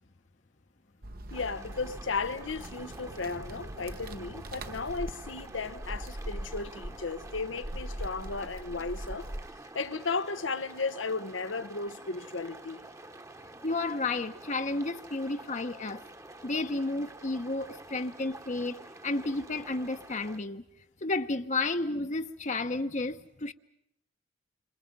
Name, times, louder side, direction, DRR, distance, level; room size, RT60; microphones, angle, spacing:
sound 1, 1.0-9.5, right 1 dB, 50° right, 1.2 m, -41 dB
voice 1, 1.3-9.3 9.7-12.8, left 4 dB, 90° left, 1.2 m, -35 dB
sound 2, 1.3-20.4, right 2 dB, 15° right, 1.2 m, -48 dB
voice 2, 13.6-16.0 16.4-20.6 21.0-23.5, left 2 dB, 40° left, 1.0 m, -32 dB
29.0 x 27.0 x 5.5 m
head